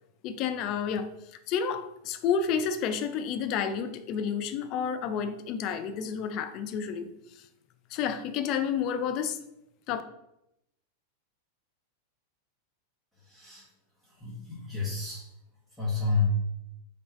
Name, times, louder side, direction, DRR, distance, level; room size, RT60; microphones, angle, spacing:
voice 1, 0.2-1.1 1.5-7.1 7.9-9.4 9.9-10.0, left 7 dB, 40° left, 10 dB, 0.4 m, -30 dB
voice 2, 13.2-13.6 14.1-15.2 15.8-16.3, left 4 dB, 5° left, -8 dB, 1.2 m, -30 dB
3.8 x 3.4 x 3.1 m, 0.83 s
figure-of-eight pair, 90°, 0 cm